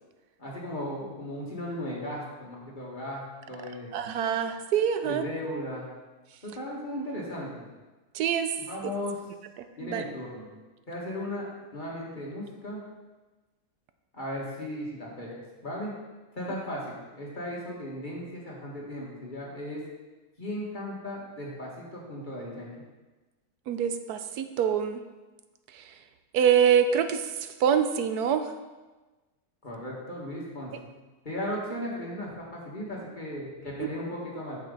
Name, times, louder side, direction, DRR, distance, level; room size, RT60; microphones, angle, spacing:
voice 1, 0.4-3.9 5.0-5.9 6.4-7.7 8.6-9.1 9.8-10.5 10.9-12.8 14.1-15.9 16.3-19.8 20.4-22.7 29.6-30.9 31.3-34.6, left 1 dB, 30° left, -4 dB, 2.0 m, -36 dB
voice 2, 3.9-5.2 8.1-8.5 9.8-10.0 23.7-25.0 25.7-25.8 26.3-28.5 33.8-33.9, right 8 dB, 85° right, 9 dB, 1.2 m, -25 dB
9.2 x 7.3 x 4.0 m, 1.2 s
omnidirectional pair, 1.6 m